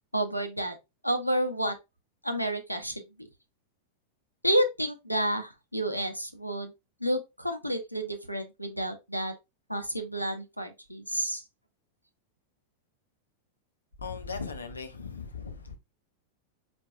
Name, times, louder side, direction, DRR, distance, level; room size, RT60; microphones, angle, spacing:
voice 1, 0.1-0.8 1.0-1.8 2.2-3.3 4.4-6.7 7.0-9.3 9.7-11.4, right 1 dB, 90° right, 0.8 m, -30 dB
voice 2, 14.0-15.7, left 5 dB, 75° left, 0.8 m, -38 dB
4.4 x 4.3 x 2.5 m
figure-of-eight pair, 90°, 0 cm